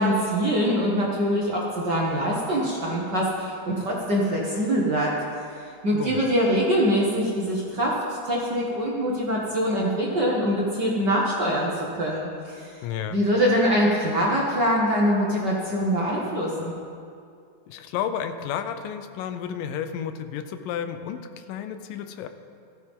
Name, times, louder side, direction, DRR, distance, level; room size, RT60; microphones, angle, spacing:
voice 1, 0.0-5.1 5.8-12.7 13.1-16.7, equal, 45° right, -4 dB, 1.4 m, -24 dB
voice 2, 5.9-6.2 12.8-13.2 17.7-22.3, left 8 dB, 90° left, 9 dB, 2.4 m, -32 dB
16.0 x 14.0 x 3.7 m, 2.4 s
omnidirectional pair, 3.8 m